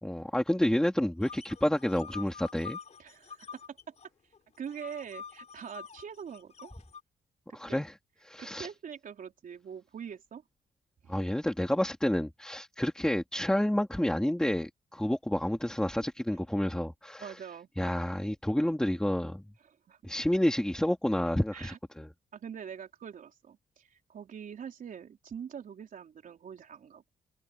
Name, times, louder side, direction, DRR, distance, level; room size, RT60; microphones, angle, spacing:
voice 1, 0.0-2.8 7.5-7.9 8.3-8.7 11.1-17.4 17.8-19.5 20.0-22.1, left 1 dB, 5° left, 2.3 m, -29 dB
sound 1, 1.2-4.1 4.3-7.0, left 6 dB, 45° left, 4.3 m, -46 dB
voice 2, 3.0-4.0 4.6-6.7 7.5-7.8 8.4-10.4 11.0-11.2 17.2-17.7 19.6-20.0 21.5-21.8 22.3-27.1, right 7 dB, 55° right, 3.9 m, -44 dB
cardioid pair, 105°, 17 cm